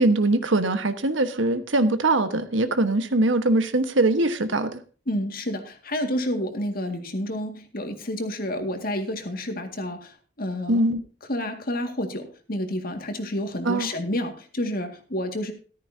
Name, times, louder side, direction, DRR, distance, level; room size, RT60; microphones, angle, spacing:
voice 1, 0.0-4.8 10.7-11.0 13.6-13.9, right 2 dB, 75° right, 10 dB, 1.4 m, -22 dB
voice 2, 5.1-10.8 11.3-15.5, left 1 dB, 50° left, 6 dB, 2.1 m, -29 dB
14.0 x 13.5 x 2.8 m, 0.38 s
head